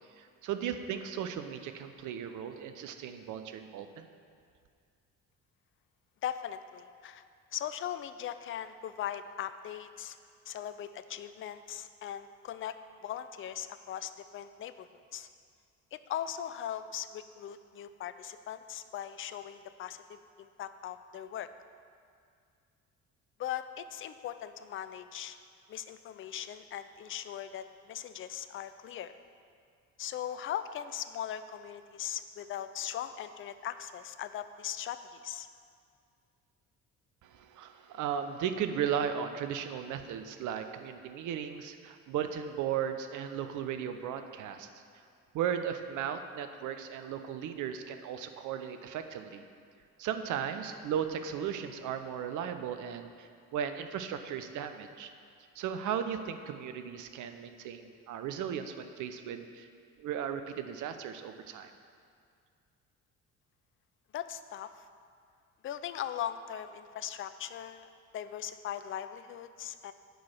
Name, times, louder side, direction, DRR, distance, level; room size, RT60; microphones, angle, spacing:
voice 1, 0.2-4.1 37.2-44.7 45.3-49.4 50.0-55.1 55.5-59.7 60.0-61.7, right 8 dB, 45° right, 8 dB, 0.8 m, -36 dB
voice 2, 6.2-7.2 7.5-10.2 10.5-12.7 13.0-15.3 15.9-21.5 23.4-25.4 25.7-29.1 30.0-35.5 64.1-64.9 65.6-69.9, left 10 dB, 30° left, 11 dB, 0.5 m, -39 dB
10.0 x 4.8 x 7.1 m, 2.3 s
figure-of-eight pair, 50°, 41 cm